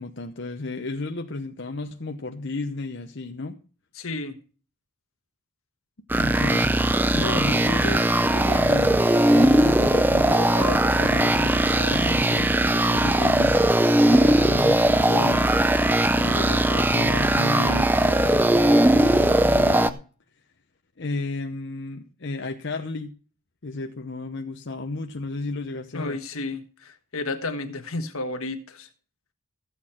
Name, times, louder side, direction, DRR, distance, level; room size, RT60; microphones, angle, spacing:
voice 1, 0.0-3.6 6.2-6.7 7.1-13.6 14.1-15.7 16.1-20.0 21.0-23.1 23.6-26.2, left 3 dB, 55° left, 0.9 m, -33 dB
voice 2, 3.9-4.4 17.5-17.9 25.9-28.9, left 2 dB, 75° left, 1.5 m, -32 dB
sound 1, 6.1-19.9, right 1 dB, 10° right, 0.5 m, -19 dB
15.0 x 8.6 x 4.4 m
head